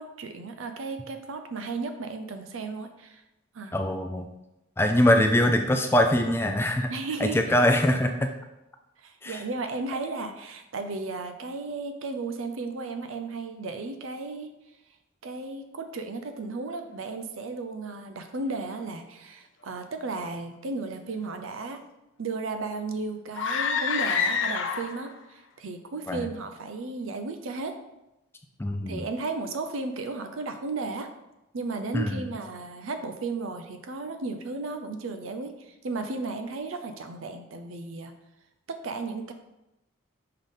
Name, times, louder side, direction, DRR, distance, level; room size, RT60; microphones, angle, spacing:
voice 1, 0.0-3.2 3.5-3.8 6.9-7.5 9.0-14.5 15.2-21.8 22.2-27.8 28.9-31.1 31.5-38.1 38.7-39.3, right 3 dB, 80° right, 7 dB, 0.5 m, -34 dB
voice 2, 3.7-4.3 4.8-6.9 7.2-8.3 9.2-9.4 26.1-26.3 28.6-29.0 31.9-32.2, left 1 dB, 10° left, 5 dB, 0.3 m, -23 dB
sound 1, 23.3-25.1, left 6 dB, 70° left, 0.7 m, -27 dB
5.7 x 3.6 x 5.3 m, 0.93 s
head